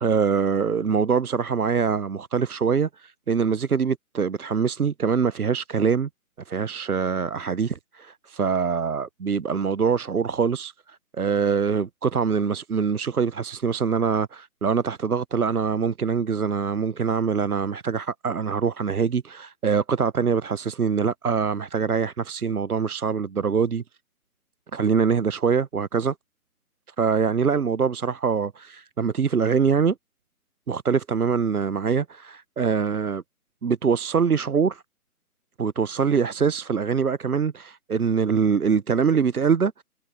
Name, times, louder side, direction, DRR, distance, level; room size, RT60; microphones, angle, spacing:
voice 1, 0.0-6.1 6.5-23.8 24.7-26.1 27.0-30.0 30.7-33.2 33.6-34.8 35.6-39.8, right 6 dB, 75° right, 0.8 m, -24 dB
figure-of-eight pair, 145°, 45 cm